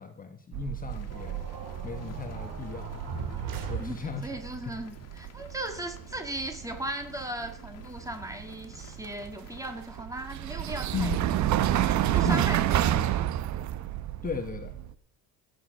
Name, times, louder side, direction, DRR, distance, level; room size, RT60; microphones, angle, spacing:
voice 1, 0.0-1.4 1.8-3.0 3.7-4.4 4.7-4.8 10.9-11.2 12.2-12.4 14.2-14.7, left 5 dB, 25° left, 6 dB, 1.1 m, -35 dB
sound 1, 0.5-14.9, right 12 dB, 55° right, 0.8 m, -30 dB
sound 2, 0.9-9.8, left 6 dB, 45° left, 2.1 m, -53 dB
sound 3, 1.1-4.4, right 6 dB, 75° right, 2.9 m, -38 dB
voice 2, 3.8-11.4 11.7-13.3, right 1 dB, 10° right, 6 dB, 2.0 m, -37 dB
16.0 x 8.3 x 6.5 m, 0.64 s
cardioid pair, 140°, 36 cm